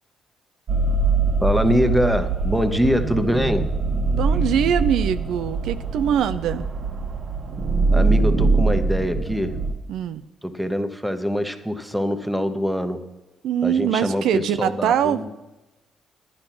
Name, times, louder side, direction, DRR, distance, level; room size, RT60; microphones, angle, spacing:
sound 1, 0.7-9.7, right 3 dB, 50° right, 1.2 m, -23 dB
voice 1, 1.4-3.7 7.9-9.5 10.4-13.0 13.6-15.3, equal, 5° right, 9 dB, 1.0 m, -23 dB
voice 2, 4.1-6.6 9.9-10.2 13.4-15.2, right 9 dB, 80° right, 12 dB, 0.5 m, -22 dB
10.5 x 9.7 x 5.9 m, 1.0 s
cardioid pair, 90°, 0 cm